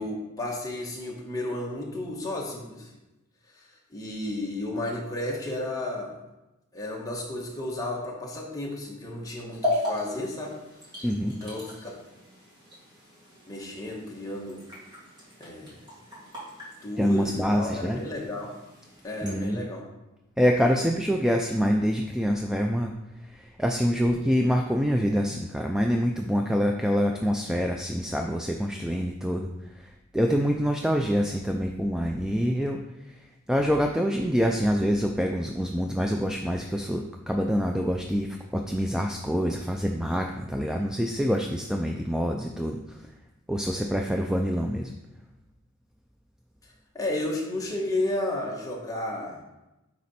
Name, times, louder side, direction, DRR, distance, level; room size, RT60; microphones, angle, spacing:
voice 1, 0.0-2.9 3.5-6.2 6.7-10.5 11.0-11.9 13.5-14.6 15.4-15.8 16.8-18.5 19.0-19.8 46.6-49.4, left 1 dB, 15° left, -2 dB, 1.4 m, -33 dB
sound 1, 9.5-19.4, left 1 dB, 20° right, 2.7 m, -37 dB
voice 2, 11.0-11.4 17.0-18.0 19.2-19.7 20.4-22.9 23.2-43.1 43.5-44.9, equal, 5° right, 3 dB, 0.3 m, -26 dB
9.4 x 4.2 x 4.2 m, 0.99 s
head